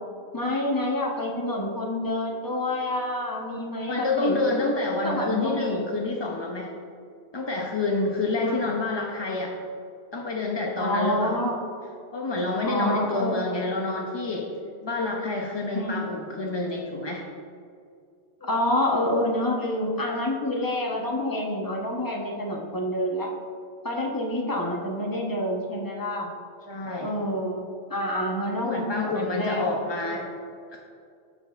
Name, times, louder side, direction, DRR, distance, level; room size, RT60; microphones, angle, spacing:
voice 1, 0.3-4.5 5.0-5.9 8.4-8.6 10.8-11.6 12.6-13.6 15.7-16.0 18.4-23.3 23.8-26.3 27.0-29.6 30.0-30.2, left 1 dB, 20° left, -1 dB, 0.8 m, -28 dB
voice 2, 3.9-6.7 7.3-9.6 10.1-11.4 12.1-14.5 14.8-17.2 26.7-27.1 28.6-30.2 30.7-30.8, left 3 dB, 40° left, -1 dB, 0.4 m, -28 dB
13.0 x 5.3 x 2.4 m, 2.4 s
omnidirectional pair, 1.2 m